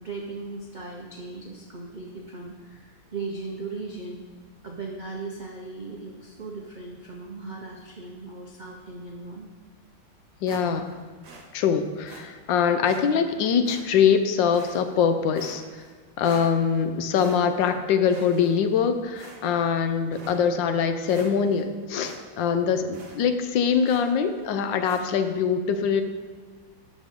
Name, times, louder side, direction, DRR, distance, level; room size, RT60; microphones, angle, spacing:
voice 1, 0.0-4.2 4.6-9.5, right 3 dB, 75° right, 0 dB, 0.4 m, -38 dB
voice 2, 10.4-10.9 11.5-15.6 16.2-26.0, left 7 dB, 75° left, 8 dB, 1.3 m, -23 dB
sound 1, 10.5-11.0 11.2-11.5 12.1-12.2 12.8-13.0 13.6-14.1 14.5-15.0 15.3-15.9 16.2-16.8 17.1-17.7 18.1-18.8 19.1-19.7 20.1-20.4 20.8-20.9 21.1-21.6 22.0-22.2 22.5-22.6 22.9-23.2 23.8-24.2 24.8-25.1, right 3 dB, 50° right, 1.3 m, -46 dB
12.0 x 6.2 x 3.7 m, 1.5 s
omnidirectional pair, 2.1 m